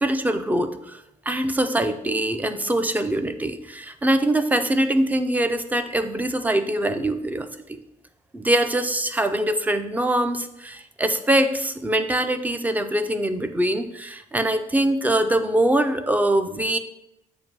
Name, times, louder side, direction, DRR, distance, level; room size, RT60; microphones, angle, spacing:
voice 1, 0.0-7.8 8.3-16.8, right 1 dB, 10° right, 9 dB, 0.4 m, -23 dB
7.5 x 2.6 x 5.2 m, 0.85 s
cardioid pair, 135°, 13 cm